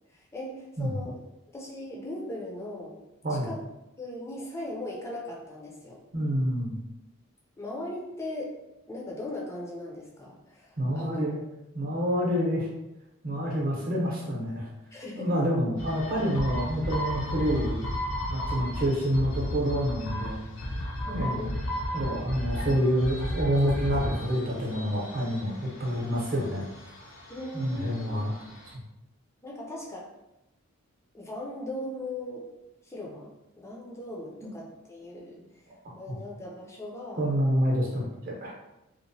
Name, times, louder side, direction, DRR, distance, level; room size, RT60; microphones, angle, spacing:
voice 1, 0.1-1.2 1.5-3.0 3.3-3.6 4.0-6.0 7.6-8.5 8.9-11.3 14.9-15.3 21.1-21.6 27.3-28.2 29.4-30.1 31.1-32.4 32.8-33.3 33.6-35.4 36.0-37.3, left 1 dB, 15° left, -3 dB, 0.5 m, -38 dB
voice 2, 6.1-6.7 10.8-11.4 11.7-12.7 13.2-14.7 15.1-17.8 18.3-20.4 21.0-21.5 21.9-26.7 27.5-28.3 37.2-38.5, equal, 40° right, -4 dB, 0.7 m, -27 dB
sound 1, 15.8-28.7, equal, 65° left, 0.5 m, -34 dB
2.9 x 2.1 x 2.6 m, 0.94 s
head